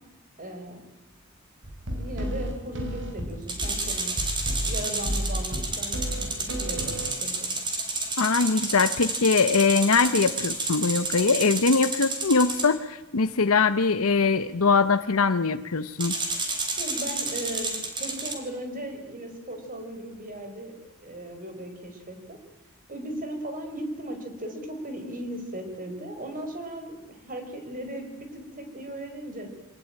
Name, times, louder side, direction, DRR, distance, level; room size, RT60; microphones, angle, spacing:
voice 1, 0.4-0.8 1.9-4.2 4.7-7.5 16.8-20.7 21.0-22.4 22.9-29.5, right 1 dB, 40° right, 6 dB, 5.1 m, -37 dB
sound 1, 1.6-7.3, equal, 60° right, 4.2 m, -32 dB
sound 2, 3.5-12.7 16.0-18.3, right 2 dB, 20° right, 3.7 m, -30 dB
voice 2, 8.2-16.1, left 4 dB, 80° left, 10 dB, 0.9 m, -22 dB
24.5 x 19.0 x 8.9 m, 1.0 s
head